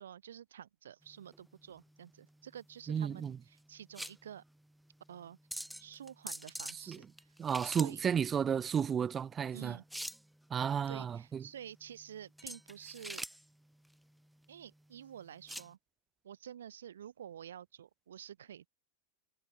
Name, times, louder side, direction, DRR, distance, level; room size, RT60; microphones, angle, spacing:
voice 1, 0.0-4.4 5.1-5.4 5.8-7.1 7.6-8.0 9.5-9.8 10.9-13.2 14.5-15.8 16.2-18.7, right 9 dB, 65° right, 3.3 m, -49 dB
sound 1, 1.0-15.7, right 1 dB, ahead, 1.3 m, -47 dB
voice 2, 2.9-3.4 6.9-7.0 7.4-9.8 10.5-11.4, right 7 dB, 20° right, 2.5 m, -33 dB
figure-of-eight pair, 90°, 0 cm